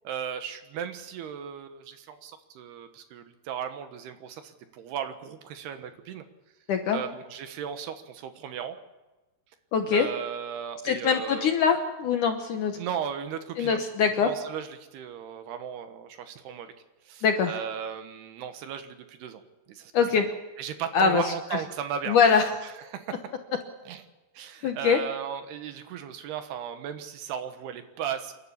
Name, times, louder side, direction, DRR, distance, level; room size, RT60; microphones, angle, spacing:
voice 1, 0.0-6.2 6.9-8.8 9.9-11.5 12.8-13.8 14.2-16.7 17.1-19.4 19.7-19.9 20.2-20.3 20.6-23.2 23.9-24.0 24.3-28.3, right 8 dB, 75° right, 8 dB, 3.2 m, -36 dB
voice 2, 6.7-7.0 9.7-10.1 10.8-12.7 13.6-14.3 17.2-17.5 19.9-20.3 20.9-21.2 22.1-22.5 24.6-25.0, left 6 dB, 65° left, 5 dB, 2.1 m, -23 dB
28.5 x 11.5 x 8.6 m, 1.1 s
omnidirectional pair, 4.9 m